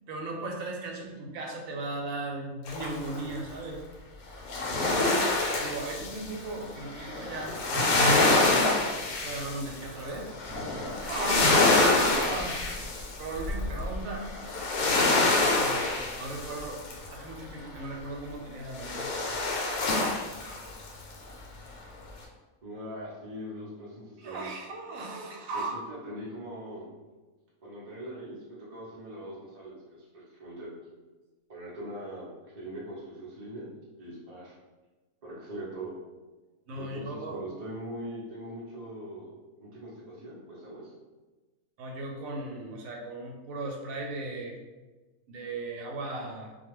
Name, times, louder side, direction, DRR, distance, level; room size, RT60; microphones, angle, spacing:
voice 1, 0.1-3.8 5.6-8.6 9.2-10.3 11.0-11.5 12.2-12.6 13.2-15.9 16.2-16.8 17.1-19.5 24.2-25.8 36.7-37.4 41.8-44.6 45.3-46.5, right 2 dB, 70° right, 0 dB, 1.0 m, -37 dB
sound 1, 2.7-3.3 4.4-17.2 18.8-20.9 21.3-21.4, left 2 dB, 80° left, 1.1 m, -26 dB
voice 2, 4.7-5.1 22.6-24.5 25.5-26.9 27.6-29.8 30.1-30.7 31.5-32.3 32.5-33.7 34.0-34.6 35.2-35.9 36.8-40.9, right 1 dB, 45° right, -7 dB, 0.5 m, -41 dB
2.4 x 2.3 x 3.1 m, 1.2 s
omnidirectional pair, 1.5 m